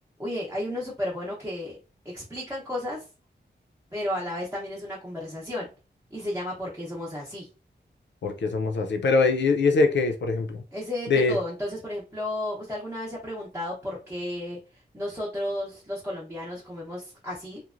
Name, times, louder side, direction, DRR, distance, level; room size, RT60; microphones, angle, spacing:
voice 1, 0.2-1.8 2.0-3.1 3.9-5.7 6.1-7.5 10.7-17.6, left 1 dB, 10° right, 0.7 m, -33 dB
voice 2, 8.2-10.6 11.1-11.4, left 4 dB, 75° left, 0.5 m, -23 dB
3.0 x 2.1 x 2.5 m
wide cardioid pair, 110°, 19 cm